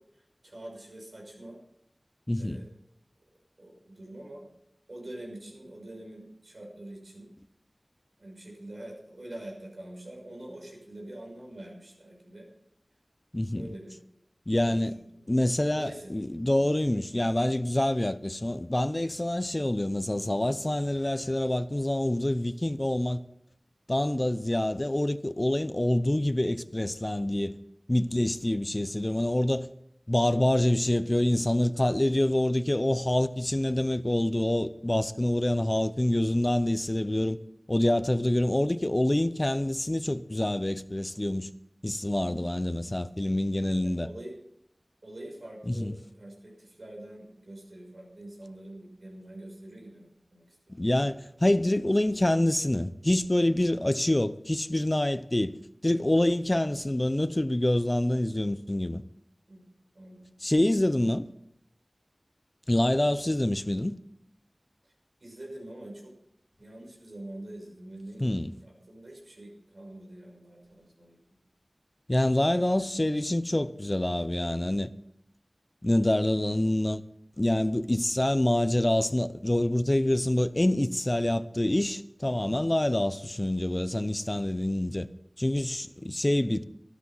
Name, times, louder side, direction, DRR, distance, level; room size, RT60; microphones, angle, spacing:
voice 1, 0.0-1.6 2.4-2.7 3.6-4.5 4.9-7.3 8.2-12.5 13.5-13.9 14.5-15.4 15.7-16.1 16.4-16.6 43.8-44.3 45.0-50.6 59.5-59.6 59.9-60.3 65.2-66.1 66.6-68.3 68.6-71.4, right 1 dB, 80° right, 6.2 m, -45 dB
voice 2, 2.3-2.6 13.3-13.7 14.5-14.9 15.3-23.2 23.9-27.6 27.9-29.7 30.1-37.4 37.7-41.5 41.8-44.1 45.7-45.9 50.7-55.6 55.8-59.0 60.4-61.3 62.7-64.0 68.2-68.5 72.1-74.9 75.8-77.0 77.4-85.1 85.4-86.6, left 1 dB, 30° left, 0.7 m, -26 dB
13.5 x 12.5 x 5.6 m
wide cardioid pair, 50°, 0 cm